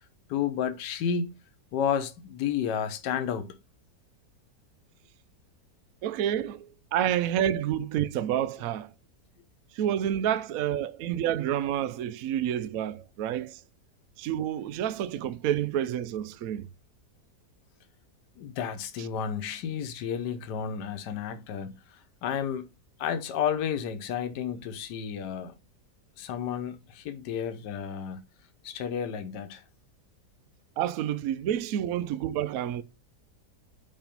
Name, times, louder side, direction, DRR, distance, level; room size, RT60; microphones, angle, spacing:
voice 1, 0.3-1.3 1.7-3.6 18.4-22.7 23.0-25.5 26.2-28.2 28.6-29.6, left 8 dB, 80° left, 1.4 m, -31 dB
voice 2, 6.0-8.9 9.7-13.6 14.2-16.7 30.8-32.8, right 10 dB, 65° right, 0.9 m, -29 dB
5.6 x 4.7 x 5.1 m
omnidirectional pair, 1.8 m